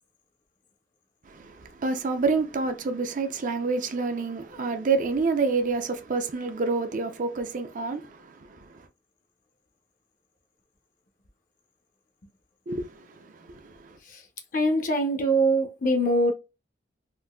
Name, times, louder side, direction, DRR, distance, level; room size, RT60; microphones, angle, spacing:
voice 1, 1.3-8.8 12.7-14.0, right 4 dB, 45° right, 0.5 m, -28 dB
voice 2, 14.5-16.3, right 1 dB, 45° left, 0.7 m, -23 dB
3.8 x 2.6 x 2.3 m
head